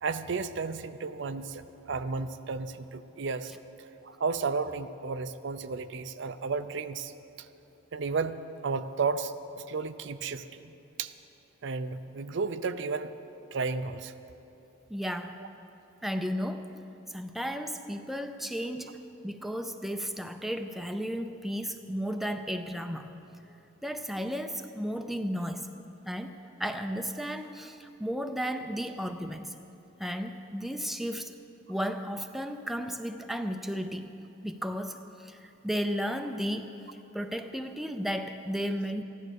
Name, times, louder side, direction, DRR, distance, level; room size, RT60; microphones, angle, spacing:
voice 1, 0.0-3.5 4.0-7.1 7.4-7.5 7.9-8.4 8.6-10.7 11.0-11.1 11.6-13.1 13.5-14.1, right 4 dB, 60° right, 11 dB, 0.5 m, -33 dB
voice 2, 14.9-15.4 16.0-16.7 17.1-23.2 23.8-25.7 26.1-29.5 30.0-31.3 31.7-34.1 34.4-36.7 37.1-39.0, equal, ahead, 6 dB, 0.4 m, -34 dB
14.5 x 11.5 x 6.5 m, 2.9 s
head